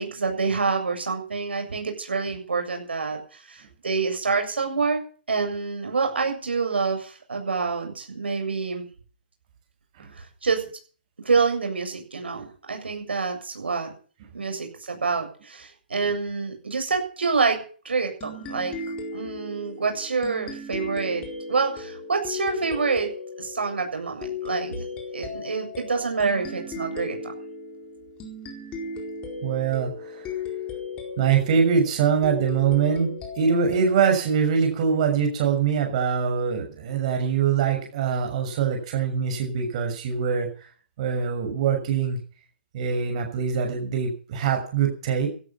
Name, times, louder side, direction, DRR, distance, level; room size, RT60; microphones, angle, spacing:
voice 1, 0.0-5.0 5.3-8.8 10.1-10.6 11.2-13.9 14.3-17.6 17.8-18.7 19.1-23.1 23.4-24.8 25.1-27.3, right 4 dB, 85° right, 4 dB, 7.4 m, -27 dB
sound 1, 18.2-35.4, left 4 dB, 15° left, 4.4 m, -37 dB
voice 2, 29.4-30.3 31.2-40.5 41.0-42.2 42.7-45.3, right 6 dB, 40° right, 3 dB, 6.4 m, -23 dB
16.0 x 13.5 x 5.8 m, 0.41 s
hypercardioid pair, 150°, 6 cm